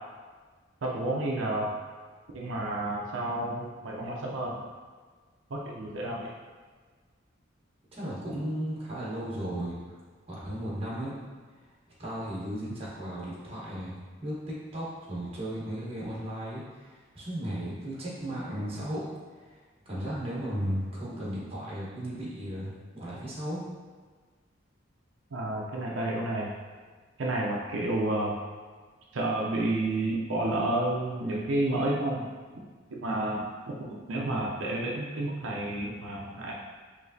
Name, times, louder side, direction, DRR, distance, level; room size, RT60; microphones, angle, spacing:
voice 1, 0.8-1.7 2.3-4.6 5.5-6.3 25.3-26.5 27.2-28.4 29.1-32.2 32.9-36.5, right 1 dB, 85° right, -3 dB, 0.6 m, -30 dB
voice 2, 7.9-9.8 10.3-11.1 12.0-14.4 14.7-19.1 19.9-23.6, equal, 30° right, -7 dB, 1.2 m, -35 dB
4.9 x 3.2 x 2.7 m, 1.5 s
head